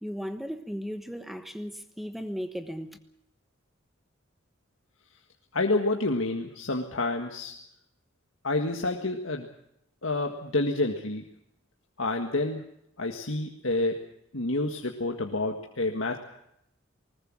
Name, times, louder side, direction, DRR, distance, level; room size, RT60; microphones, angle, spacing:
voice 1, 0.0-3.0, equal, ahead, 8 dB, 1.2 m, -36 dB
voice 2, 5.5-7.5 8.4-9.5 10.0-11.2 12.0-12.6 13.0-14.0 14.3-16.2, left 2 dB, 85° left, 2 dB, 1.8 m, -28 dB
20.5 x 20.0 x 7.4 m, 0.76 s
head